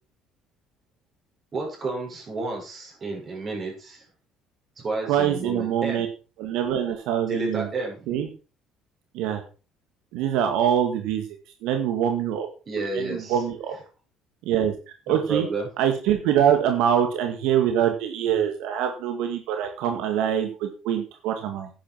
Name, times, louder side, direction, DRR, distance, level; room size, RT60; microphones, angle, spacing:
voice 1, 1.5-4.0 4.8-6.0 7.3-8.1 12.7-13.4 15.1-15.7, right 3 dB, 30° right, 0 dB, 6.0 m, -31 dB
voice 2, 5.1-6.1 6.4-8.3 9.1-9.4 10.1-11.3 11.6-12.5 12.8-13.8 14.5-15.5 15.8-21.7, right 9 dB, 80° right, 5 dB, 1.9 m, -24 dB
11.0 x 10.0 x 4.6 m, 0.34 s
cardioid pair, 140°, 0 cm